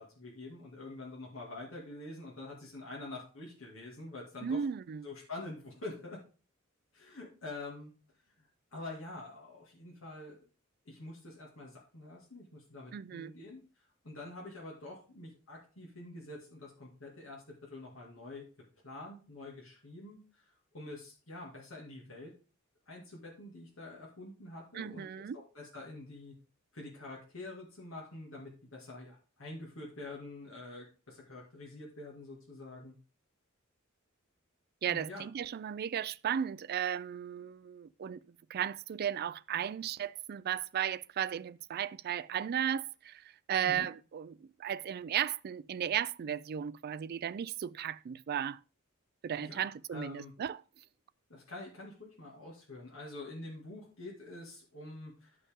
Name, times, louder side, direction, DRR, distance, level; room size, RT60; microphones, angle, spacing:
voice 1, 0.0-4.6 5.0-6.2 6.9-7.9 8.3-8.5 8.7-10.4 10.9-18.4 18.8-22.3 22.9-25.2 25.5-26.3 26.7-32.9 34.9-35.3 43.6-43.8 49.5-49.7 49.9-50.3 51.3-55.4, left 2 dB, 70° left, 2.3 m, -46 dB
voice 2, 4.4-5.1 12.9-13.3 24.7-25.4 34.8-38.2 38.5-48.6 49.2-50.6, right 9 dB, 50° right, 0.3 m, -35 dB
11.0 x 5.6 x 3.6 m
head